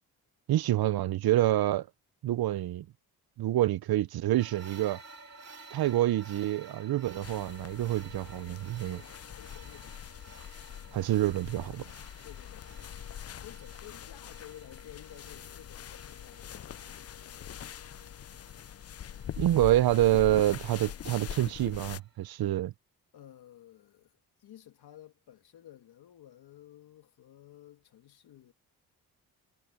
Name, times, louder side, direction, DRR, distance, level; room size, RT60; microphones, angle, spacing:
voice 1, 0.5-1.9 2.2-2.8 3.4-5.0 5.7-9.0 10.9-11.8 19.4-22.7, right 14 dB, 70° right, 0.7 m, -27 dB
sound 1, 4.4-22.6, right 3 dB, 45° right, 3.0 m, -54 dB
sound 2, 7.2-22.0, left 10 dB, 40° left, 0.5 m, -44 dB
voice 2, 8.8-10.0 12.2-12.7 13.4-17.8 23.1-24.1 24.4-28.5, left 12 dB, 80° left, 2.4 m, -53 dB
cardioid pair, 85°, 38 cm